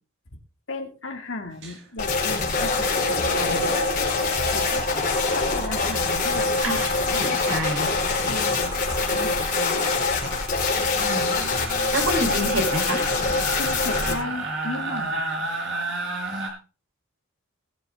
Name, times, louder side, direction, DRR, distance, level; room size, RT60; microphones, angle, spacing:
voice 1, 0.7-4.0 4.5-4.8 5.3-6.5 8.2-10.0 13.6-15.5, left 2 dB, 60° left, 6 dB, 2.3 m, -35 dB
sound 1, 1.6-1.8 2.1-16.5, right 1 dB, 60° right, 5.2 m, -33 dB
sound 2, 2.0-14.1, left 4 dB, 40° left, 4.8 m, -24 dB
voice 2, 6.6-8.0 10.9-11.5 11.9-13.0, right 1 dB, 80° right, 3 dB, 4.0 m, -28 dB
20.5 x 7.4 x 3.6 m, 0.34 s
head